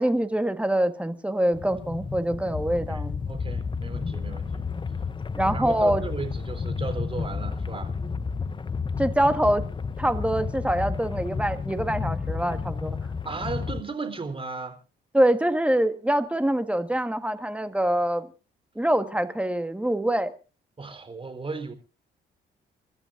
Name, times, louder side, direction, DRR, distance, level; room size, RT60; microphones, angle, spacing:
voice 1, 0.0-3.2 5.3-6.0 9.0-9.6 10.0-13.0 15.1-18.3 18.7-20.3, right 1 dB, 5° right, 1.5 m, -24 dB
sound 1, 1.5-13.8, left 5 dB, 25° left, 0.7 m, -31 dB
voice 2, 2.3-4.7 5.0-5.1 5.5-7.9 13.2-14.8 20.8-21.7, right 4 dB, 25° right, 3.9 m, -35 dB
29.5 x 13.0 x 2.6 m
cardioid pair, 90°, 20 cm